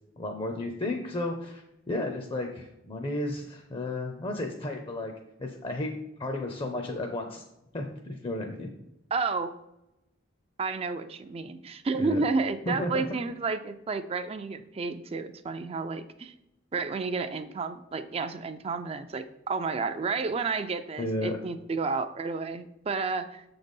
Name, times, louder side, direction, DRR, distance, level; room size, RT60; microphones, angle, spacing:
voice 1, 0.2-5.1 5.4-5.9 6.2-7.4 7.7-8.7 12.0-12.2 12.7-13.0 21.0-21.4, left 1 dB, 25° left, 3 dB, 0.6 m, -33 dB
voice 2, 9.1-9.5 10.6-16.3 16.7-23.4, right 4 dB, 30° right, 9 dB, 0.3 m, -31 dB
6.7 x 4.0 x 5.3 m, 0.89 s
head